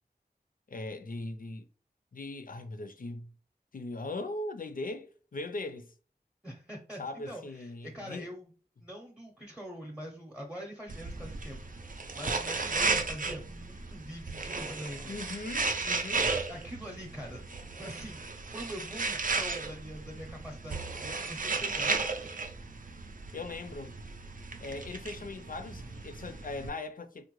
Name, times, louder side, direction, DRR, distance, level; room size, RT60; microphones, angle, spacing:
voice 1, 0.7-1.7 2.1-3.3 3.7-5.9 7.0-8.3 15.1-16.3 23.3-24.0 24.6-27.2, left 2 dB, 55° left, 0.4 m, -39 dB
voice 2, 6.4-8.5 8.8-15.1 16.5-17.5 17.8-22.0, equal, 5° right, 0.7 m, -44 dB
sound 1, 10.9-26.7, right 3 dB, 55° right, 0.5 m, -35 dB
3.6 x 2.1 x 3.0 m
wide cardioid pair, 55°, 17 cm